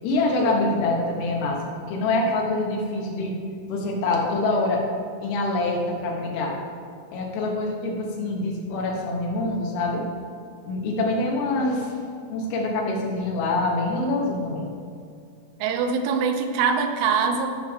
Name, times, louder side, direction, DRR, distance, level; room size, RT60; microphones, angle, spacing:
voice 1, 0.0-3.4 3.7-4.8 5.2-6.5 7.1-10.0 10.7-12.0 12.3-14.6, left 2 dB, 90° left, -2 dB, 4.2 m, -25 dB
voice 2, 15.6-17.5, right 6 dB, 90° right, 5 dB, 3.5 m, -23 dB
15.5 x 6.3 x 3.6 m, 2.3 s
omnidirectional pair, 5.8 m